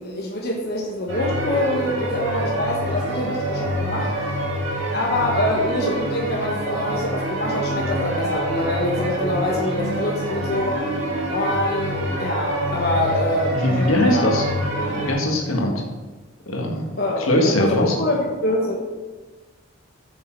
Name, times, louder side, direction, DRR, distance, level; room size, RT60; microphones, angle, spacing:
voice 1, 0.0-4.1 4.9-10.8 11.3-14.4 17.0-18.8, left 1 dB, 45° left, -2 dB, 1.1 m, -25 dB
sound 1, 1.1-15.1, right 1 dB, 55° right, 2.3 m, -26 dB
voice 2, 13.5-14.5 14.8-15.7 16.5-16.9 17.2-18.0, left 1 dB, 75° left, 1 dB, 1.6 m, -21 dB
8.3 x 6.9 x 4.5 m, 1.3 s
head